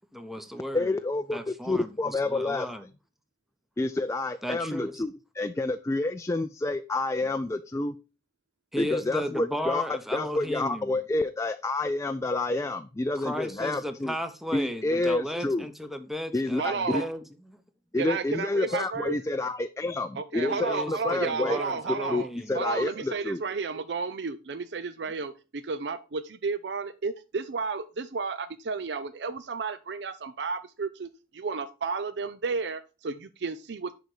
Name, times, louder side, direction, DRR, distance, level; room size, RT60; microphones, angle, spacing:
voice 1, 0.1-0.9 1.3-2.9 4.4-5.0 8.7-11.0 13.2-17.6 18.7-18.8 20.4-22.6, equal, ahead, 0.8 m, -35 dB
voice 2, 0.7-2.7 3.8-5.1 5.4-7.9 8.8-14.1 14.5-15.7 16.3-17.0 17.9-20.1 20.3-21.6 22.1-23.4, left 2 dB, 15° left, 0.4 m, -29 dB
voice 3, 16.6-17.1 18.0-19.1 20.2-22.3 22.5-34.0, right 4 dB, 70° right, 0.5 m, -32 dB
10.5 x 4.0 x 4.8 m
head